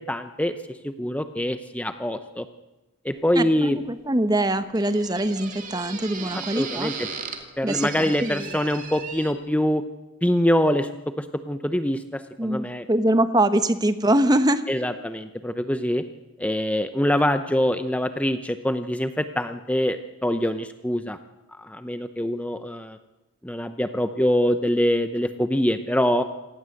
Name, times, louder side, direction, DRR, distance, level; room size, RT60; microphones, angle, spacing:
voice 1, 0.1-0.5 0.8-2.5 3.0-3.8 6.5-6.9 7.6-9.8 10.2-10.9 11.2-12.8 14.7-16.0 16.4-21.2 21.6-23.0 23.4-26.2, equal, 5° left, 9 dB, 0.7 m, -24 dB
sound 1, 3.1-9.3, right 5 dB, 40° right, 2.6 m, -38 dB
voice 2, 3.3-6.9 7.6-8.6 12.4-14.6, right 1 dB, 20° right, 12 dB, 1.0 m, -23 dB
27.0 x 18.0 x 7.9 m, 1.1 s
head